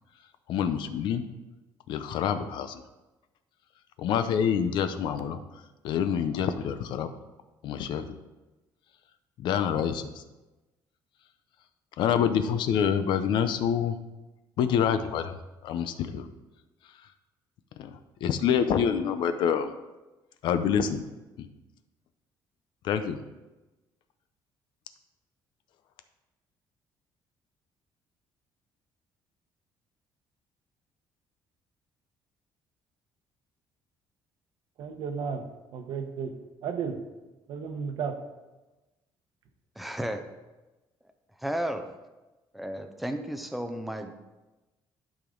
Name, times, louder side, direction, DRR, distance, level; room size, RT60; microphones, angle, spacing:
voice 1, 0.5-1.2 1.9-2.8 4.0-5.4 5.8-7.1 7.6-8.2 9.4-10.2 12.0-14.0 14.6-16.3 17.8-19.7 20.4-21.0 21.4-21.5 22.8-23.2, left 8 dB, 70° left, 10 dB, 0.7 m, -27 dB
voice 2, 34.8-37.0 37.5-38.2, right 6 dB, 65° right, 6 dB, 1.0 m, -34 dB
voice 3, 39.8-40.2 41.4-41.9 42.5-44.1, right 1 dB, ahead, 6 dB, 0.6 m, -33 dB
11.5 x 5.1 x 3.9 m, 1.1 s
cardioid pair, 155°, 8 cm